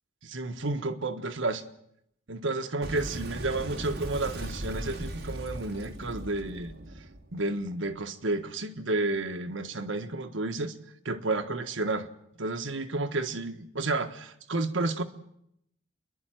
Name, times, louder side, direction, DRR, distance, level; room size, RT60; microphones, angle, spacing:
voice 1, 0.3-1.6 2.3-6.7 7.3-10.7 11.0-12.1 12.4-15.0, right 2 dB, 85° right, 8 dB, 1.5 m, -31 dB
Boom, 2.8-8.0, right 1 dB, 55° right, 2.6 m, -38 dB
27.5 x 11.5 x 9.1 m, 0.77 s
head